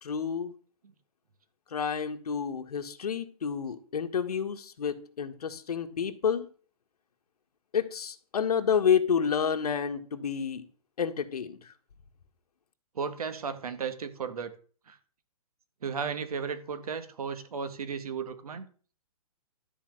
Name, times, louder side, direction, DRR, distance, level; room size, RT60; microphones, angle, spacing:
voice 1, 0.0-0.5 1.7-6.5 7.7-10.6 11.0-11.7, left 7 dB, 75° left, 6 dB, 1.6 m, -29 dB
voice 2, 13.0-14.5 14.9-15.0 15.8-18.7, right 6 dB, 70° right, 10 dB, 1.9 m, -34 dB
12.5 x 5.0 x 7.8 m, 0.42 s
hypercardioid pair, 175°, 20 cm